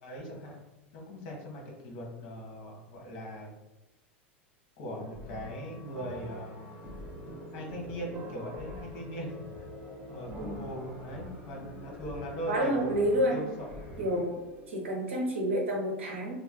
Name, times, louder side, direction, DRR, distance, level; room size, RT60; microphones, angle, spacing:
voice 1, 0.0-0.6 0.9-3.6 4.8-6.7 7.5-9.7 10.1-14.1, equal, 55° left, -1 dB, 1.1 m, -40 dB
sound 1, 4.9-14.2, left 2 dB, 25° left, 1.1 m, -46 dB
sound 2, 6.0-14.7, right 2 dB, 35° right, 0.7 m, -48 dB
voice 2, 12.5-13.4 14.0-16.3, equal, 80° right, -1 dB, 0.9 m, -29 dB
3.2 x 3.2 x 2.2 m, 1.0 s
figure-of-eight pair, 85°, 7 cm